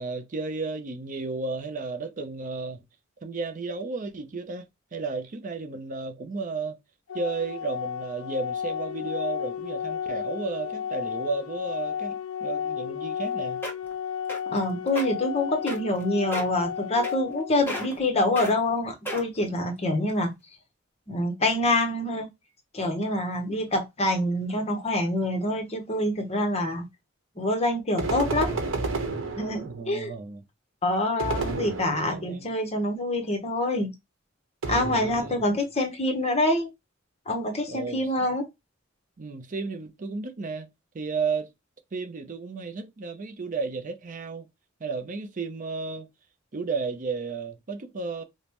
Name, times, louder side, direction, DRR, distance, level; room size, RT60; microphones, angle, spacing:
voice 1, 0.0-2.8 3.2-6.8 7.1-13.6 29.6-30.4 31.4-32.5 35.0-35.4 37.7-38.3 39.2-40.7 40.9-41.5 41.9-44.5 44.8-46.1 46.5-48.2, right 4 dB, 40° right, 0.5 m, -33 dB
Organ, 7.1-18.1, left 8 dB, 90° left, 0.4 m, -33 dB
sound 1, 13.2-13.3 13.6-13.9 14.3-14.6 14.9-15.1 15.7-16.0 16.3-16.6 17.0-17.4 17.7-18.0 18.4-18.5 19.1-19.4 20.0-20.1, equal, 10° left, 1.1 m, -33 dB
voice 2, 14.5-20.3 21.1-22.3 22.7-26.9 27.4-28.5 29.4-30.1 30.8-33.9 34.7-36.7 37.3-38.5, left 1 dB, 30° left, 0.9 m, -26 dB
sound 2, 28.0-29.9 31.2-32.4 34.6-35.6, right 3 dB, 75° right, 0.9 m, -31 dB
5.1 x 2.1 x 2.9 m
head